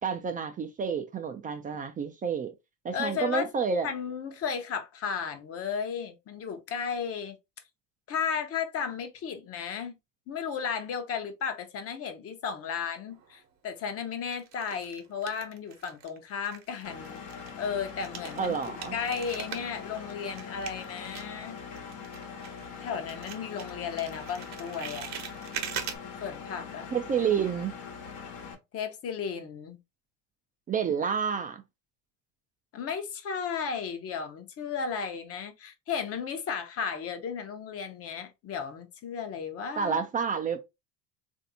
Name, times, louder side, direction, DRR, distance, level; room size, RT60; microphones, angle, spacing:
voice 1, 0.0-2.5 2.8-3.9 18.4-19.0 26.9-27.7 30.7-31.6 39.8-40.6, right 6 dB, 25° right, 0.4 m, -29 dB
voice 2, 2.9-3.5 3.8-7.4 8.1-10.0 10.3-17.2 17.6-18.6 18.9-21.6 22.8-25.1 26.2-26.9 28.7-29.8 32.7-40.0, left 6 dB, 45° left, 0.8 m, -34 dB
sound 1, 13.1-13.7 14.3-16.2 16.4-22.8 23.1-26.0, right 8 dB, 55° right, 0.9 m, -42 dB
Engine, 16.8-28.5, left 6 dB, 75° left, 1.1 m, -42 dB
3.3 x 2.6 x 2.7 m
supercardioid pair, 90°, 33 cm